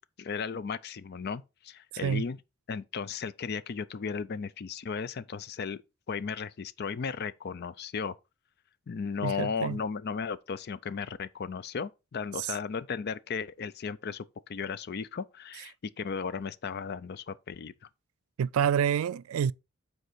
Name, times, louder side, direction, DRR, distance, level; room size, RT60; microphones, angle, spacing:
voice 1, 0.2-2.4 2.7-5.8 6.1-8.1 8.9-17.7, left 5 dB, 50° left, 0.4 m, -35 dB
voice 2, 1.9-2.2 9.2-9.8 12.4-12.5 18.4-19.5, right 8 dB, 75° right, 0.3 m, -28 dB
8.0 x 4.7 x 4.2 m
head